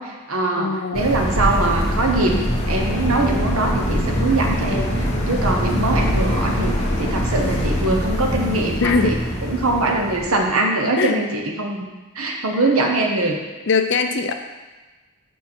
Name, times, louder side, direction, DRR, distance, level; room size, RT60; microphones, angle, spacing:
voice 1, 0.0-2.4 2.7-9.2 9.5-11.8 12.1-13.4, right 2 dB, 75° right, 2 dB, 1.0 m, -22 dB
voice 2, 0.6-1.1 8.8-9.2 11.0-11.2 13.7-14.3, left 4 dB, 55° left, 7 dB, 0.5 m, -21 dB
sound 1, 0.9-10.5, equal, 30° left, 1.1 m, -23 dB
6.3 x 5.7 x 4.5 m, 1.2 s
head